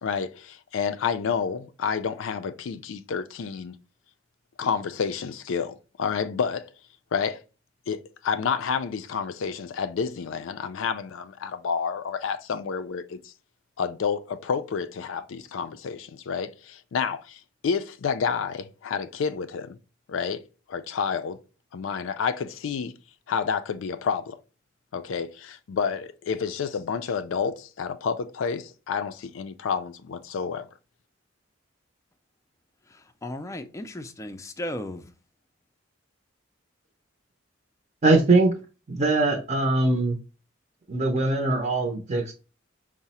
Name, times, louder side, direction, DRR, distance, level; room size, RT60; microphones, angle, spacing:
voice 1, 0.0-3.7 4.6-6.7 7.1-7.4 7.9-13.3 13.8-19.8 20.1-20.4 20.7-21.4 21.7-22.9 23.3-24.4 24.9-30.7, left 6 dB, 80° left, 0.4 m, -29 dB
voice 2, 32.9-35.1, left 1 dB, 15° left, 0.3 m, -36 dB
voice 3, 38.0-38.5 38.9-40.2 40.9-42.3, right 2 dB, 35° right, 0.5 m, -21 dB
4.7 x 2.0 x 4.0 m
head